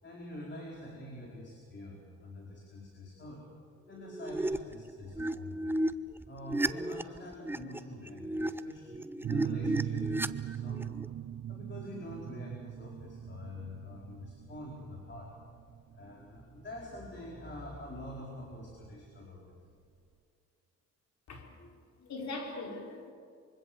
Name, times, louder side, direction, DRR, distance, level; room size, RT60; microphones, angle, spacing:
voice 1, 0.0-3.5 3.9-5.8 6.2-11.0 11.5-15.3 15.9-19.6, left 1 dB, 35° left, 4.8 m, -46 dB
sound 1, 4.0-4.7 5.1-11.1, right 1 dB, 5° right, 0.7 m, -34 dB
sound 2, 9.2-18.6, right 10 dB, 55° right, 0.8 m, -40 dB
voice 2, 21.3-21.7 22.0-23.1, left 2 dB, 65° left, 4.7 m, -41 dB
25.0 x 24.0 x 7.3 m
cardioid pair, 90°, 30 cm